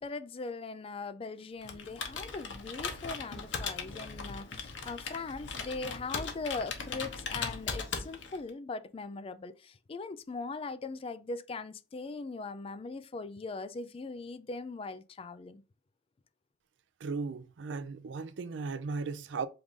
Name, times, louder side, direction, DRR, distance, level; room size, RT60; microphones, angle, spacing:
voice 1, 0.0-15.6, left 3 dB, 30° left, 0.3 m, -40 dB
Computer keyboard, 1.6-8.5, left 5 dB, 85° left, 0.9 m, -39 dB
voice 2, 17.0-19.5, right 4 dB, 80° right, 0.4 m, -36 dB
4.7 x 2.6 x 3.5 m
head